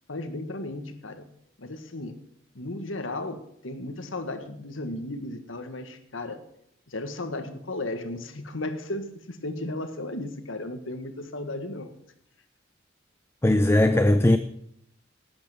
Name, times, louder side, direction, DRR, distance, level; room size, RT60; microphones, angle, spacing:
voice 1, 0.1-1.3 1.6-2.1 2.6-6.4 6.9-11.9, left 2 dB, 85° left, 1.7 m, -35 dB
voice 2, 13.4-14.4, left 1 dB, 15° left, 0.5 m, -19 dB
12.5 x 8.8 x 7.8 m
head